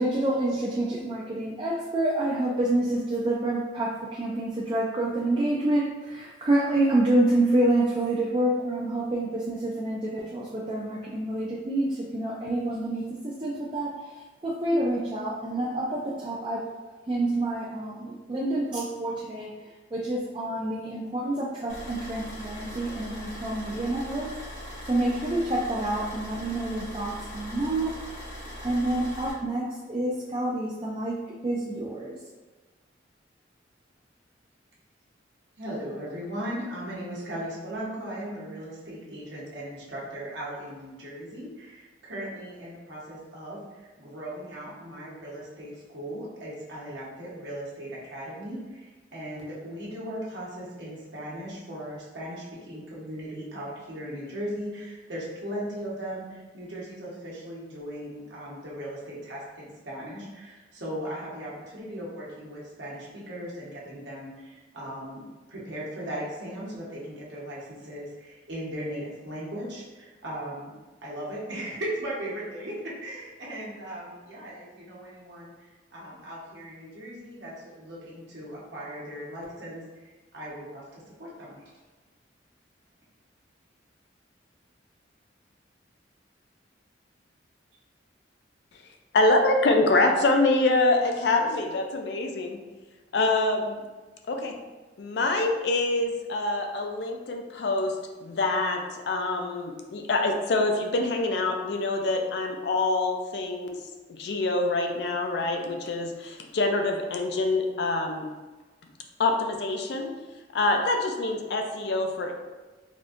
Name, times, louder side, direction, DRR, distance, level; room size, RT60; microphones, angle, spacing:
voice 1, 0.0-14.0 14.4-16.6 17.1-19.5 19.9-24.3 24.9-27.9 28.6-31.2 31.4-32.2, right 1 dB, 25° right, -4 dB, 0.3 m, -27 dB
sound 1, 21.7-29.3, equal, 85° left, 1.4 m, -40 dB
voice 2, 35.6-65.2 65.5-70.7 71.0-81.6, right 1 dB, 70° right, -6 dB, 0.9 m, -38 dB
voice 3, 89.1-92.6 93.1-93.8 94.3-94.5 95.0-97.9 98.2-103.8 104.1-108.3 109.2-110.1 110.5-112.3, left 2 dB, 60° left, 3 dB, 0.4 m, -25 dB
3.5 x 2.6 x 2.4 m, 1.2 s
head